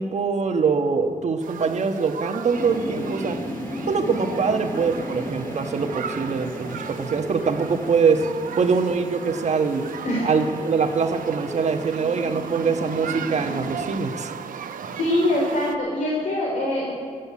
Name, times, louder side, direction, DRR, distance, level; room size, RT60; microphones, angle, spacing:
voice 1, 0.0-3.4 3.9-8.3 8.6-9.9 10.2-14.3, right 5 dB, 55° right, 5 dB, 1.3 m, -23 dB
sound 1, 1.4-15.8, right 7 dB, 80° right, 0.8 m, -37 dB
sound 2, 2.5-13.9, equal, 20° left, 2.0 m, -36 dB
voice 2, 14.6-16.9, left 1 dB, 65° left, -2 dB, 3.3 m, -24 dB
15.5 x 9.4 x 8.4 m, 2.3 s
wide cardioid pair, 120°, 14 cm